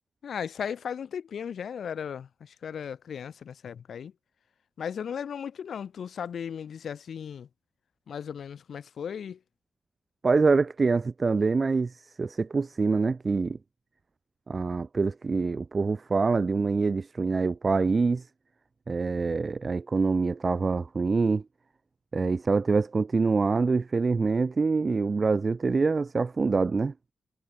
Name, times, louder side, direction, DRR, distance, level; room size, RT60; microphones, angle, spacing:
voice 1, 0.2-4.1 4.8-7.5 8.1-9.4, left 7 dB, 80° left, 6.0 m, -36 dB
voice 2, 10.2-13.6 14.5-18.2 18.9-21.4 22.1-26.9, right 4 dB, 35° right, 2.8 m, -25 dB
wide cardioid pair, 140°, 0 cm